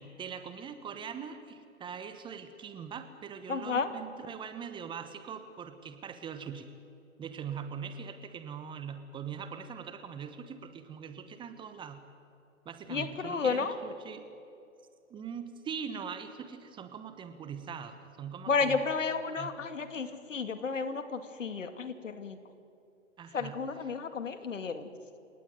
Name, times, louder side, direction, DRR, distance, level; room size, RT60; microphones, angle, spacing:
voice 1, 0.0-6.7 7.2-12.0 12.6-14.2 15.1-18.8 19.4-19.5 23.2-23.6, right 7 dB, 10° right, 10 dB, 1.1 m, -42 dB
voice 2, 3.5-3.9 12.9-13.8 18.5-22.4 23.3-24.9, left 5 dB, 70° left, 9 dB, 2.4 m, -32 dB
29.5 x 18.5 x 9.3 m, 2.6 s
figure-of-eight pair, 125°, 40 cm